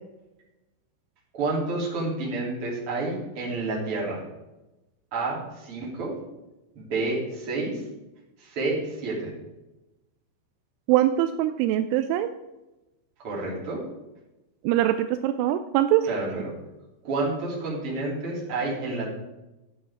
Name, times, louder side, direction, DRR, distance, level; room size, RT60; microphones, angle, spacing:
voice 1, 1.3-4.2 5.1-6.1 6.7-7.8 8.4-9.3 13.2-13.8 16.0-16.5 17.0-19.1, right 3 dB, 30° right, -4 dB, 3.4 m, -29 dB
voice 2, 10.9-12.3 14.6-16.1, right 13 dB, 85° right, 10 dB, 3.0 m, -22 dB
13.0 x 8.5 x 3.7 m, 1.0 s
omnidirectional pair, 5.7 m